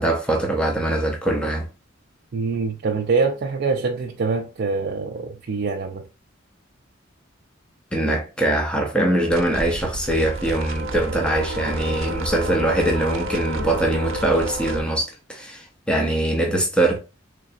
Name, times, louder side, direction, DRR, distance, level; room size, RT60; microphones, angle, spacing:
voice 1, 0.0-1.7 7.9-17.0, right 1 dB, 5° left, 0.7 m, -22 dB
voice 2, 2.3-6.1, right 4 dB, 50° right, 0.4 m, -24 dB
sound 1, 9.3-14.8, right 1 dB, 85° right, 0.7 m, -30 dB
3.9 x 3.2 x 2.5 m
head